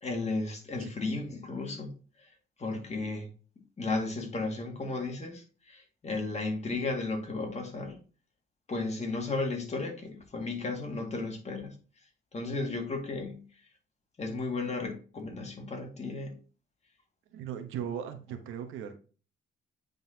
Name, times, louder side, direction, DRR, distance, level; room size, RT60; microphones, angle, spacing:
voice 1, 0.0-1.9 2.6-3.3 3.8-8.0 8.7-11.8 12.3-13.4 14.2-16.3, left 3 dB, 35° left, 1.9 m, -34 dB
voice 2, 17.3-19.0, right 9 dB, 90° right, 0.9 m, -38 dB
9.3 x 3.9 x 2.8 m
cardioid pair, 90°, 20 cm